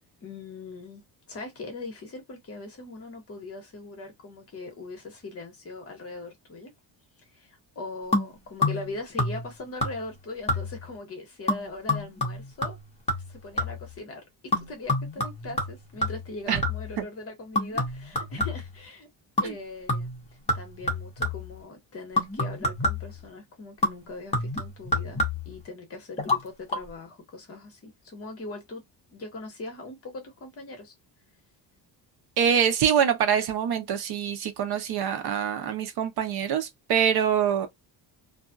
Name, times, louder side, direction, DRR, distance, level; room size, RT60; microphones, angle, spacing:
voice 1, 0.2-1.0 1.3-6.7 7.2-12.8 13.3-19.1 19.4-20.1 20.5-28.8 29.1-30.9, left 2 dB, 35° left, 1.0 m, -40 dB
sound 1, 8.1-8.9 9.2-9.5 9.8-10.2 10.5-10.9 11.5-13.9 14.5-17.0 17.6-18.8 19.4-19.6 19.9-21.5 22.2-23.2 23.8-25.6 26.2-26.4 26.7-26.8, left 2 dB, 15° left, 0.8 m, -28 dB
voice 2, 32.4-37.7, right 8 dB, 60° right, 0.8 m, -25 dB
2.6 x 2.3 x 2.4 m
cardioid pair, 175°, 43 cm